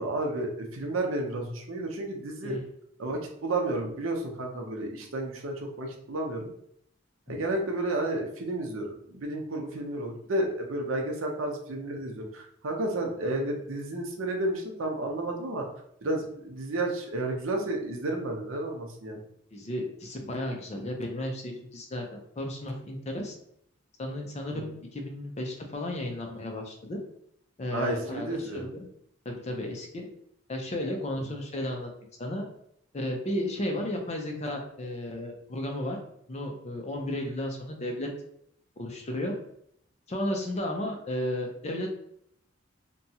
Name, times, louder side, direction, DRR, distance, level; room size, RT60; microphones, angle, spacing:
voice 1, 0.0-2.6 3.0-6.5 7.3-15.7 16.0-19.2 27.7-28.7, right 2 dB, 80° right, 1 dB, 0.6 m, -31 dB
voice 2, 19.5-23.3 24.0-27.0 27.6-28.9 29.2-30.1 30.5-31.9 32.2-32.5 32.9-36.0 36.3-38.1 38.8-39.3 40.1-42.0, left 1 dB, 35° left, 2 dB, 0.5 m, -33 dB
2.8 x 2.2 x 2.7 m, 0.70 s
head